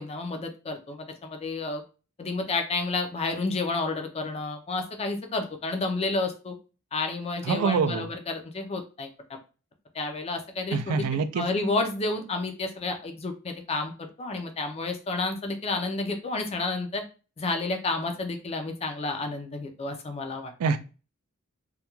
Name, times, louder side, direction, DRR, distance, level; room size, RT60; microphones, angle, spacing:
voice 1, 0.0-1.8 2.2-6.5 6.9-9.4 9.9-11.0 11.4-17.0 17.4-20.5, left 3 dB, 30° left, 0.4 m, -30 dB
voice 2, 7.4-8.1 10.7-11.4 20.6-20.8, right 5 dB, 80° right, 0.3 m, -25 dB
2.3 x 2.2 x 2.9 m
head